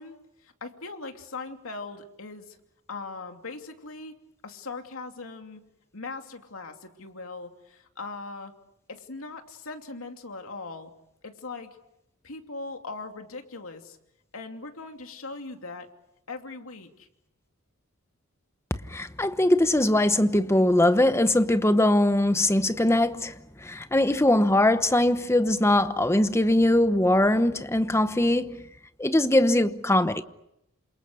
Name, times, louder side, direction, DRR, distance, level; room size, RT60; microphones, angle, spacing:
voice 1, 0.0-2.6 2.9-4.1 4.4-5.6 5.9-8.5 8.9-10.9 11.2-11.8 12.2-14.0 14.3-15.9 16.3-17.1, left 3 dB, 75° left, 2.9 m, -40 dB
voice 2, 18.9-23.3 23.6-28.7 29.0-30.2, left 1 dB, 15° left, 1.0 m, -21 dB
28.5 x 27.5 x 6.4 m
head